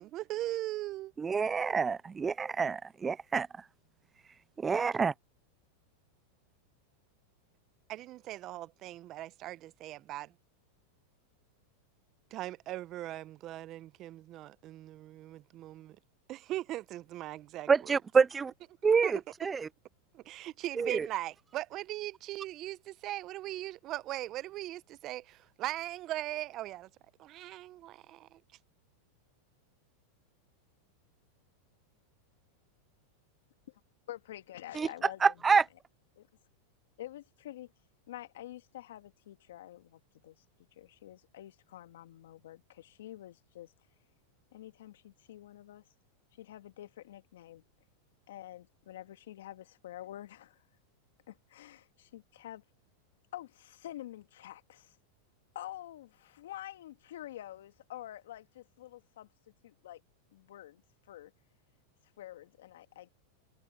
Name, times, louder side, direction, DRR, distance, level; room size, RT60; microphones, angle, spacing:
voice 1, 0.0-1.1 7.9-10.3 12.3-16.0 16.3-17.9 19.0-19.2 20.1-26.9 27.2-28.4, right 15 dB, 40° right, 0.8 m, -39 dB
voice 2, 1.2-3.5 4.6-5.1 17.7-18.5 18.8-19.7 20.8-21.1 34.7-34.9 35.2-35.6, right 5 dB, 20° right, 0.3 m, -27 dB
voice 3, 34.1-35.2 36.2-36.3 37.0-37.7 38.1-40.4 40.8-43.7 44.5-45.8 46.4-47.6 48.3-50.6 51.3-52.6 53.3-55.0 55.5-59.3 59.6-60.0 60.3-60.8 61.1-61.3 62.2-63.1, left 13 dB, 75° left, 1.9 m, -47 dB
hypercardioid pair, 110°, 0 cm